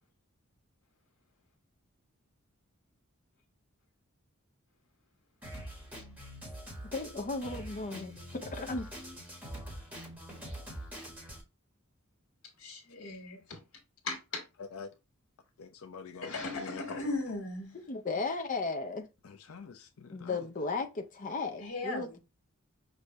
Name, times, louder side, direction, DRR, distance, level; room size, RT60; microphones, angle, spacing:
Drum kit, 5.4-11.4, equal, 10° right, 1.6 m, -44 dB
voice 1, 6.9-8.1 8.4-8.9 17.9-19.0 20.1-22.2, left 3 dB, 40° left, 0.6 m, -35 dB
voice 2, 12.6-13.6 14.0-14.4 16.2-17.8 21.6-22.2, left 2 dB, 65° left, 1.7 m, -37 dB
voice 3, 14.6-14.9 15.6-17.1 19.2-20.5, left 5 dB, 85° left, 0.6 m, -46 dB
6.1 x 2.6 x 3.1 m
head